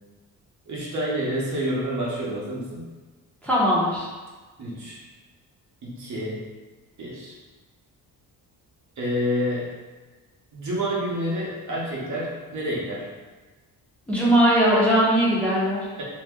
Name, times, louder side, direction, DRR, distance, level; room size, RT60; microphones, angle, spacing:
voice 1, 0.7-2.9 4.6-5.0 5.8-6.5 7.0-7.3 9.0-9.7 10.5-13.1 16.0-16.1, equal, 50° right, -5 dB, 0.9 m, -28 dB
voice 2, 3.4-4.1 14.1-15.9, equal, 5° left, -8 dB, 0.7 m, -20 dB
2.7 x 2.2 x 3.5 m, 1.3 s
cardioid pair, 110°, 38 cm